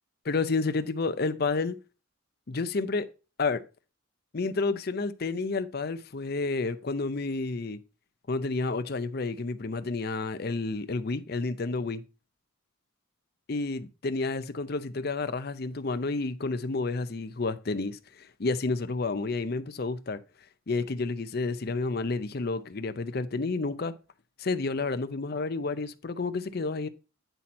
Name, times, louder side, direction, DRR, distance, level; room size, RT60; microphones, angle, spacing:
voice 1, 0.2-1.8 2.5-3.1 3.4-3.6 4.3-7.8 8.3-12.0 13.5-20.2 20.7-23.9 24.4-26.9, left 3 dB, 50° left, 0.6 m, -30 dB
9.0 x 4.3 x 4.2 m
head